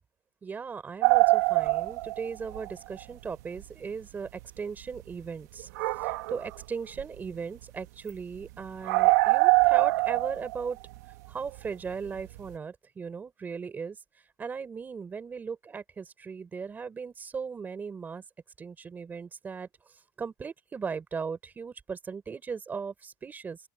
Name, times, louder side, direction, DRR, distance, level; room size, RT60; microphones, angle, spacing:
voice 1, 0.4-5.7 6.3-10.8 11.3-14.0 14.4-18.2 18.6-19.7 20.2-23.6, right 5 dB, 20° right, 4.1 m, -37 dB
sound 1, 1.0-2.7 3.0-3.1 3.6-3.7 4.4-4.5 5.6-6.6 6.9-7.3 7.6-7.7 8.1-8.2 8.4-8.5 8.8-11.9 12.2-12.5, right 23 dB, 80° right, 1.6 m, -24 dB
open air
supercardioid pair, 140°, 9 cm